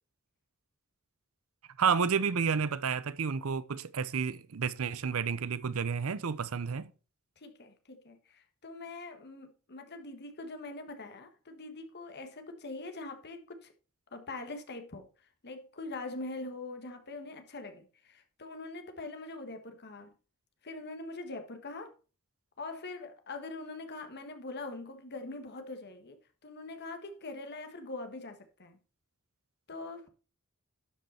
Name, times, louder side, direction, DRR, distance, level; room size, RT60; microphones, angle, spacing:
voice 1, 1.8-6.9, right 6 dB, 70° right, 0.6 m, -30 dB
voice 2, 7.4-13.7 14.1-15.1 15.4-20.1 20.6-21.9 22.6-28.8 29.7-30.1, left 2 dB, 50° left, 1.5 m, -43 dB
12.0 x 5.4 x 4.3 m
head